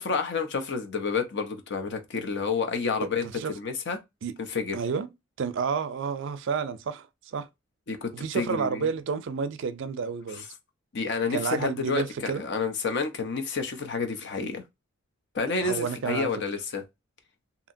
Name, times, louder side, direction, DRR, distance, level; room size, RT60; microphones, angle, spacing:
voice 1, 0.0-4.0 4.5-4.8 7.9-8.9 10.3-10.4 10.9-14.6 15.3-16.8, left 4 dB, 60° left, 0.6 m, -29 dB
voice 2, 4.7-5.1 5.4-7.5 8.1-10.4 11.3-12.4 15.6-16.3, right 5 dB, 65° right, 0.4 m, -30 dB
2.8 x 2.7 x 2.6 m
head